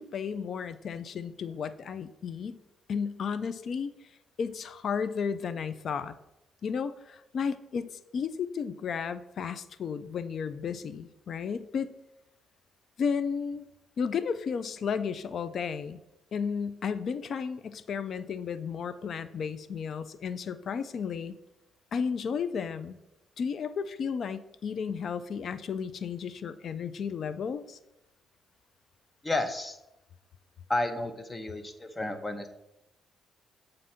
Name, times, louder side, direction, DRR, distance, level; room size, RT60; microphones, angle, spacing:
voice 1, 0.0-2.6 2.9-3.9 4.4-6.1 6.6-11.9 13.0-13.7 14.0-16.0 16.3-21.3 21.9-23.0 23.4-27.8, left 6 dB, 60° left, 13 dB, 0.4 m, -33 dB
voice 2, 29.2-29.8 30.7-32.5, left 2 dB, 20° left, 8 dB, 0.7 m, -31 dB
7.3 x 2.6 x 5.5 m, 0.90 s
cardioid pair, 90°, 0 cm